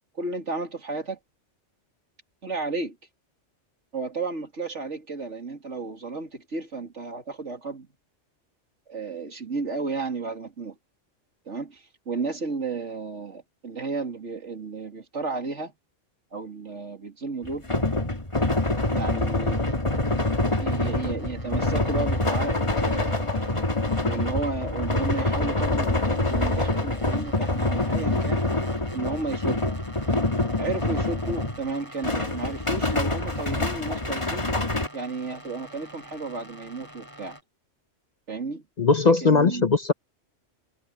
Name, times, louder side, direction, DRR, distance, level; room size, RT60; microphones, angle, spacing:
voice 1, 0.1-1.2 2.4-3.0 3.9-7.9 8.9-10.8 11.5-15.7 16.3-17.7 18.9-19.6 20.6-23.7 24.0-28.4 28.9-29.7 30.6-34.5 34.9-37.4 38.3-38.6 39.0-39.7, right 3 dB, 75° right, 3.1 m, -33 dB
sound 1, 17.4-31.7 32.0-34.9, left 2 dB, 25° left, 2.1 m, -26 dB
sound 2, 18.5-37.4, equal, 15° right, 8.1 m, -47 dB
voice 2, 38.8-39.9, left 4 dB, 40° left, 0.8 m, -19 dB
omnidirectional pair, 1.2 m